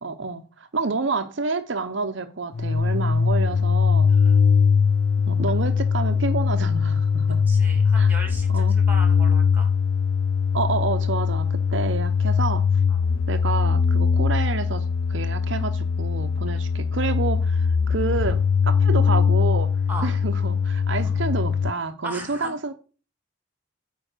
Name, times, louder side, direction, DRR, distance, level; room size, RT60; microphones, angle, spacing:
voice 1, 0.0-4.1 5.3-7.4 8.0-8.1 8.5-8.8 10.5-12.6 13.3-19.7 20.0-22.7, right 3 dB, 70° right, 0.9 m, -29 dB
sound 1, 2.5-21.7, left 6 dB, 85° left, 0.4 m, -21 dB
voice 2, 4.1-4.4 5.5-5.6 7.5-9.7 12.9-13.0 16.5-16.6 19.9-20.1 21.0-21.1 22.0-22.5, right 1 dB, 10° right, 2.6 m, -37 dB
9.1 x 5.2 x 6.6 m
head